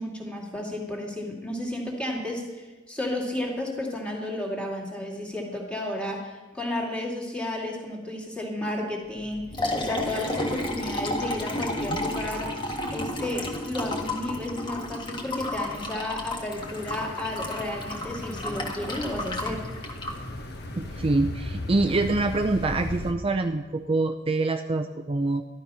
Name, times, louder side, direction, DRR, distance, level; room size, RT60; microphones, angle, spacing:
voice 1, 0.0-12.6 12.9-19.6, left 1 dB, 5° left, -2 dB, 2.4 m, -32 dB
Liquid, 9.2-21.1, left 1 dB, 25° left, 1.6 m, -32 dB
sound 1, 16.6-23.1, left 1 dB, 55° left, 1.2 m, -37 dB
voice 2, 20.8-25.4, right 2 dB, 25° right, 6 dB, 0.5 m, -25 dB
13.0 x 12.0 x 5.6 m, 1.3 s
head